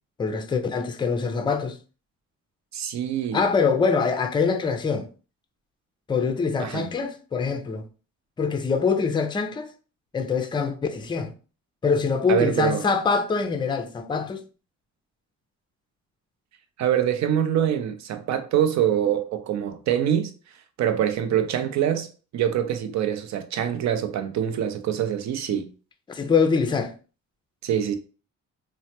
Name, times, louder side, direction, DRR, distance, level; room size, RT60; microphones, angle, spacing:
voice 1, 0.2-1.8 3.3-5.1 6.1-7.9 8.4-9.7 10.1-11.3 11.8-14.4 26.1-26.9, left 5 dB, 15° left, 0.4 m, -24 dB
voice 2, 2.7-3.4 6.6-6.9 12.3-12.8 16.8-20.3 20.8-22.1 22.3-25.7 27.6-28.0, right 10 dB, 65° right, 0.6 m, -24 dB
3.1 x 2.1 x 2.8 m
cardioid pair, 90°, 30 cm